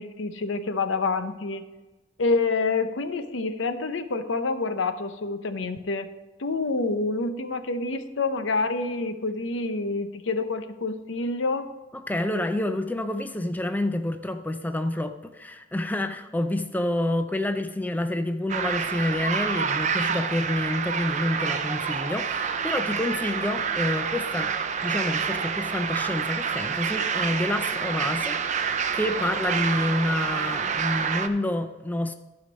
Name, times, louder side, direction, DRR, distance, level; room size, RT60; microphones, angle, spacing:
voice 1, 0.0-1.6 2.2-6.1 6.4-11.7, left 3 dB, 75° left, 10 dB, 0.7 m, -27 dB
voice 2, 12.1-24.5 24.8-32.1, left 1 dB, 10° left, 8 dB, 0.4 m, -28 dB
sound 1, 18.5-31.3, right 6 dB, 40° right, 0.5 m, -28 dB
12.0 x 5.1 x 5.2 m, 1.1 s
head